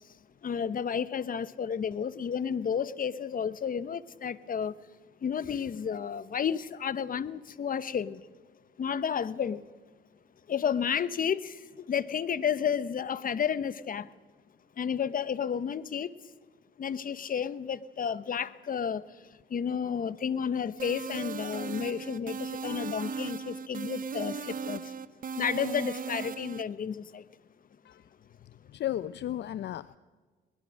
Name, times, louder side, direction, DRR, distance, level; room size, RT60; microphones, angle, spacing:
voice 1, 0.4-4.7 5.2-8.2 8.8-9.6 10.5-14.1 14.8-16.1 16.8-19.0 19.5-24.8 25.4-27.2, left 7 dB, 45° left, 17 dB, 1.0 m, -31 dB
sound 1, 20.8-26.6, right 6 dB, 45° right, 0.9 m, -37 dB
voice 2, 28.7-30.0, left 12 dB, 60° left, 17 dB, 0.6 m, -34 dB
22.0 x 20.0 x 6.5 m, 1.4 s
cardioid pair, 90°, 20 cm